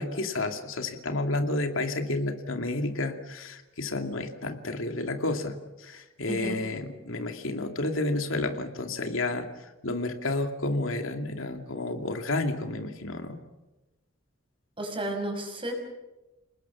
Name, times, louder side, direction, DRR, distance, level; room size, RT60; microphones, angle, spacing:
voice 1, 0.0-5.6 5.8-9.5 9.8-13.4, left 2 dB, 90° left, 5 dB, 2.5 m, -30 dB
voice 2, 6.3-6.6 14.8-15.7, right 1 dB, 25° right, 4 dB, 5.7 m, -32 dB
29.5 x 20.0 x 7.3 m, 1.1 s
head